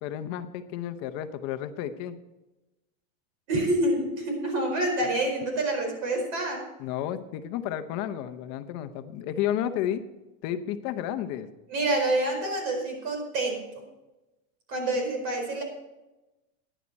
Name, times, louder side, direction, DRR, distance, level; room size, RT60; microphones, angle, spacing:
voice 1, 0.0-2.1 5.0-5.1 6.8-10.0 10.4-11.5, left 11 dB, 40° left, 10 dB, 0.9 m, -32 dB
voice 2, 3.5-6.7 11.7-13.6 14.7-15.6, right 1 dB, 50° right, 3 dB, 4.7 m, -27 dB
14.0 x 10.0 x 4.2 m, 1.0 s
supercardioid pair, 155°, 40 cm